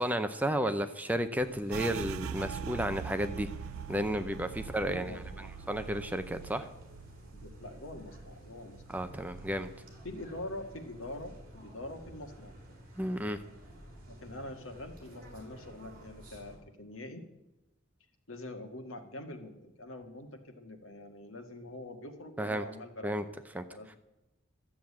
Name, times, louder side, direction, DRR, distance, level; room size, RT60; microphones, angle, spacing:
voice 1, 0.0-3.5 3.9-5.1 5.7-6.7 8.9-9.7 13.0-13.4 22.4-22.6 23.0-23.2 23.5-23.6, equal, 10° right, 9 dB, 0.6 m, -32 dB
sound 1, 1.3-16.6, equal, 45° right, 3.7 m, -52 dB
sound 2, 1.7-11.1 11.4-12.6 13.0-13.4 13.9-14.5, right 7 dB, 80° right, 0.4 m, -44 dB
voice 2, 4.7-5.6 6.6-6.7 7.3-8.8 10.0-12.5 14.1-17.3 18.3-23.3 23.7-24.0, left 1 dB, 70° left, 5 dB, 1.8 m, -44 dB
12.5 x 7.7 x 8.5 m, 0.94 s
head